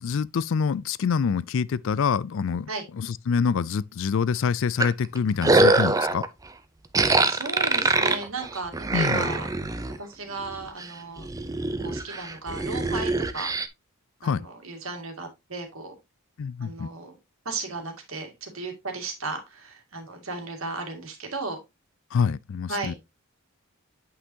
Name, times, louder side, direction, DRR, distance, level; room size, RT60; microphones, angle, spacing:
voice 1, 0.0-2.7 3.0-6.2 8.9-9.3 14.2-14.4 16.4-16.9 22.1-22.9, left 6 dB, 60° left, 0.4 m, -26 dB
sound 1, 4.8-6.3 6.9-10.0 10.4-10.9 11.2-13.7, right 2 dB, 15° right, 0.5 m, -23 dB
voice 2, 7.3-9.5 10.0-11.3 11.8-13.5 14.2-15.9 16.6-17.2 17.5-21.6 22.7-23.0, right 3 dB, 70° right, 2.2 m, -35 dB
8.4 x 5.7 x 2.8 m
head